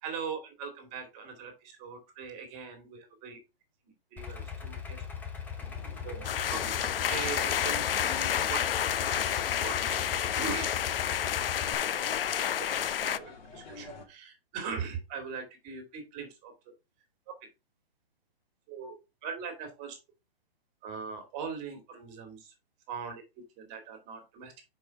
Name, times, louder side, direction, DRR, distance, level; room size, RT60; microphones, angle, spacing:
voice 1, 0.0-3.4 4.1-5.0 6.0-10.1 10.3-10.7 13.0-16.5 18.7-19.0 19.2-20.0 20.8-22.5 22.9-23.2 23.6-24.5, right 5 dB, 25° right, 5 dB, 2.5 m, -40 dB
Idling, 4.2-11.7, left 7 dB, 5° left, 0.7 m, -40 dB
sound 1, 5.6-14.1, left 4 dB, 50° left, 2.5 m, -48 dB
sound 2, 6.2-13.2, left 9 dB, 75° left, 0.6 m, -30 dB
6.0 x 5.3 x 4.5 m, 0.26 s
hypercardioid pair, 150°, 29 cm